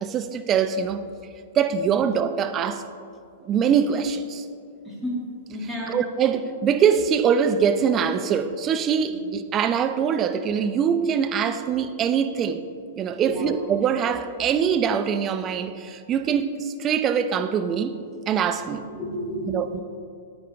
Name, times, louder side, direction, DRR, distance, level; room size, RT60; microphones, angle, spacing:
voice 1, 0.0-1.0 1.5-2.8 3.4-4.5 5.9-12.6 13.0-17.9 18.3-18.8 19.5-19.8, right 7 dB, 25° right, 0.5 m, -23 dB
voice 2, 4.8-5.2 5.5-6.0 13.2-13.5 18.9-19.8, equal, ahead, 2.3 m, -31 dB
9.3 x 9.2 x 3.4 m
figure-of-eight pair, 105°, 0 cm